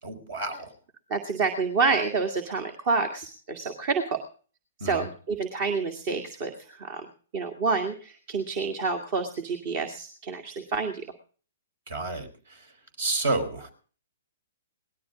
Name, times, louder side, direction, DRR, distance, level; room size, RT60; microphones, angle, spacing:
voice 1, 0.0-0.7 4.8-5.1 11.9-12.7 13.0-13.7, right 2 dB, 60° right, 9 dB, 4.4 m, -30 dB
voice 2, 1.1-4.2 4.8-7.1 7.3-11.0, right 4 dB, 45° right, 6 dB, 2.0 m, -28 dB
19.0 x 13.0 x 5.1 m, 0.41 s
figure-of-eight pair, 115°, 0 cm